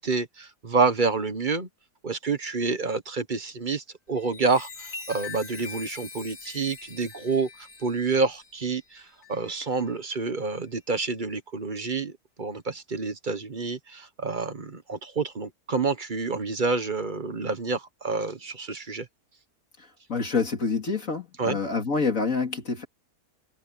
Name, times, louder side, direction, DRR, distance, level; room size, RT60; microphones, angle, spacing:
voice 1, 0.0-1.7 2.0-7.5 7.8-9.0 9.3-12.1 12.4-19.1 21.4-21.6, right 4 dB, 35° right, 1.1 m, -28 dB
Chime, 4.1-10.1 10.6-10.9, left 4 dB, 75° left, 3.7 m, -43 dB
voice 2, 20.1-22.9, left 4 dB, 60° left, 2.8 m, -27 dB
omnidirectional pair, 1.6 m